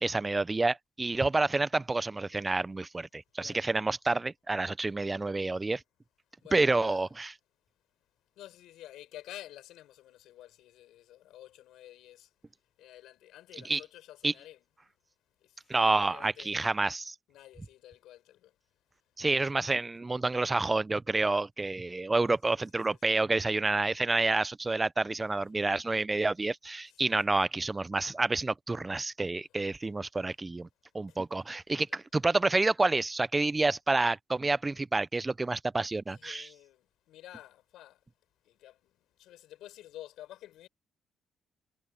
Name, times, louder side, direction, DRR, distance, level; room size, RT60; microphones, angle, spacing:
voice 1, 0.0-5.8 6.5-7.3 13.6-13.8 14.2-14.3 15.7-17.2 19.2-30.7 30.9-36.5, right 3 dB, 20° right, 0.4 m, -29 dB
voice 2, 6.4-7.1 8.3-12.3 12.8-14.9 15.4-16.8 17.3-18.5 22.5-23.2 25.5-26.0 26.9-27.3 29.4-29.5 31.1-31.2 31.9-32.0 36.1-38.0 38.4-40.7, left 13 dB, 85° left, 6.9 m, -51 dB
cardioid pair, 90°, 0 cm